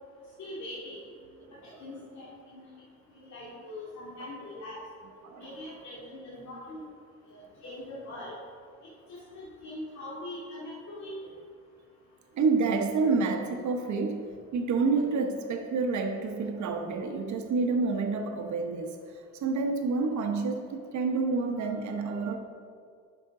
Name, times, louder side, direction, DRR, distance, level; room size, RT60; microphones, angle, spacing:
voice 1, 0.4-1.0 1.6-2.7 3.1-4.8 5.4-6.8 7.3-8.4 9.1-11.2, left 1 dB, 65° left, -8 dB, 2.3 m, -42 dB
voice 2, 12.3-19.0 19.4-22.4, right 4 dB, 70° right, 5 dB, 1.0 m, -28 dB
10.5 x 6.1 x 3.7 m, 2.1 s
cardioid pair, 90°, 30 cm